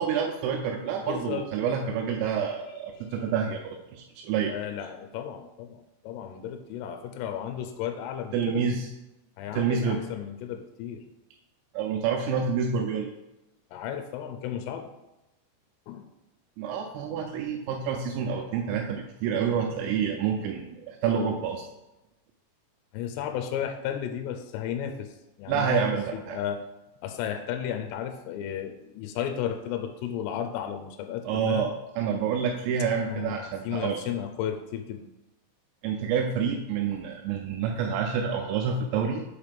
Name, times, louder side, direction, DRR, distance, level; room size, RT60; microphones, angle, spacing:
voice 1, 0.0-4.5 8.3-8.9 9.5-10.0 11.7-13.1 16.6-21.6 25.5-26.4 31.3-34.0 35.8-39.2, right 6 dB, 85° right, 1 dB, 3.3 m, -28 dB
voice 2, 1.0-1.5 3.0-3.1 4.5-8.6 9.4-11.0 13.7-14.9 15.9-16.1 22.9-25.9 26.1-26.6 27.0-31.7 33.1-35.1, left 9 dB, 85° left, 7 dB, 3.0 m, -34 dB
7.3 x 3.3 x 5.0 m, 0.96 s
omnidirectional pair, 5.8 m